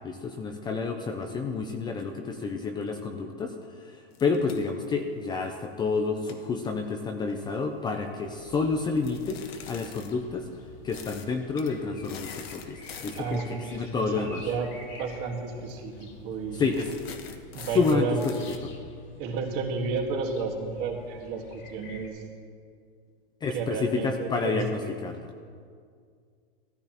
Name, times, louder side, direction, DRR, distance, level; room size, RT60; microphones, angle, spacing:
voice 1, 0.0-10.5 10.8-13.4 13.7-14.5 16.6-16.9 17.6-18.1 18.6-18.7 23.4-25.3, left 4 dB, 15° left, 4 dB, 0.5 m, -29 dB
sound 1, 4.1-5.6 6.1-7.7 9.0-10.1 10.9-11.3 11.6-11.7 12.0-13.5 14.7-15.0 15.3-15.4 15.7-16.0 16.7-18.6, left 7 dB, 85° left, 1.3 m, -45 dB
sound 2, 8.2-22.1, left 2 dB, 40° left, 2.4 m, -49 dB
voice 2, 13.1-16.6 17.5-18.4 19.1-22.2 23.5-24.6, right 4 dB, 40° right, 2 dB, 1.7 m, -32 dB
14.0 x 13.5 x 2.9 m, 2.1 s
supercardioid pair, 140°, 30 cm